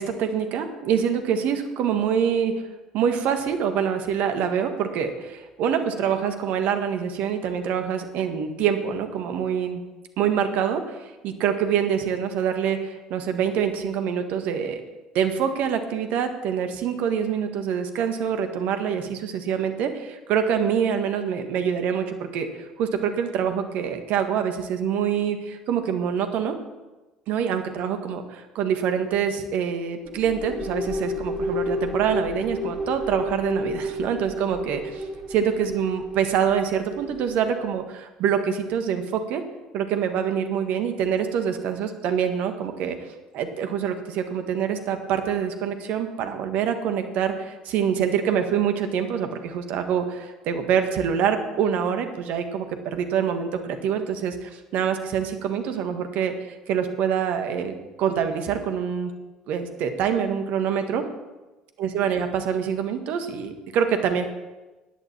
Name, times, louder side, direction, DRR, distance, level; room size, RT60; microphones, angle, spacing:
voice 1, 0.0-2.5 2.9-9.8 10.2-14.8 15.1-26.6 27.3-39.4 39.7-43.0 43.3-56.3 56.7-59.1 59.5-61.0 61.8-64.3, right 8 dB, 60° right, 7 dB, 1.6 m, -25 dB
sound 1, 30.0-37.6, left 1 dB, 25° right, 4.8 m, -31 dB
17.0 x 11.0 x 4.5 m, 1.1 s
figure-of-eight pair, 60°, 3 cm